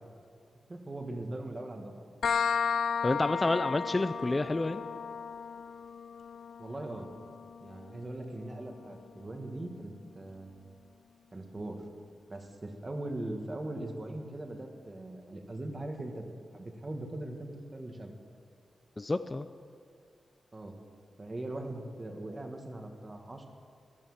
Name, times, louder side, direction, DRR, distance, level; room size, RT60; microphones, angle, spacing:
voice 1, 0.7-2.1 6.6-7.1 7.6-10.7 11.3-11.8 12.3-16.2 16.5-18.1 20.5-20.8 21.2-23.5, right 1 dB, 30° right, 4 dB, 1.8 m, -40 dB
sound 1, 2.2-9.6, left 6 dB, 80° left, 0.5 m, -35 dB
voice 2, 3.0-4.8 19.0-19.5, left 2 dB, 25° left, 11 dB, 0.4 m, -29 dB
14.5 x 12.5 x 7.4 m, 2.2 s
wide cardioid pair, 105°, 0 cm